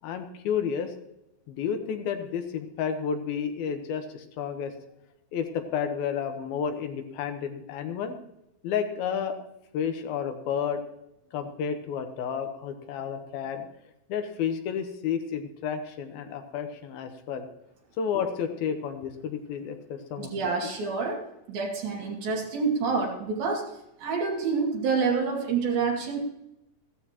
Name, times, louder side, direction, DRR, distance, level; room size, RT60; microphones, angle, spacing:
voice 1, 0.0-0.9 1.5-4.7 5.3-8.1 8.6-9.3 9.7-10.8 11.3-13.6 14.1-17.5 18.0-20.3, left 7 dB, 80° left, 6 dB, 2.9 m, -31 dB
voice 2, 20.2-26.2, right 5 dB, 70° right, -1 dB, 4.1 m, -28 dB
15.0 x 13.5 x 3.0 m, 0.84 s
omnidirectional pair, 4.3 m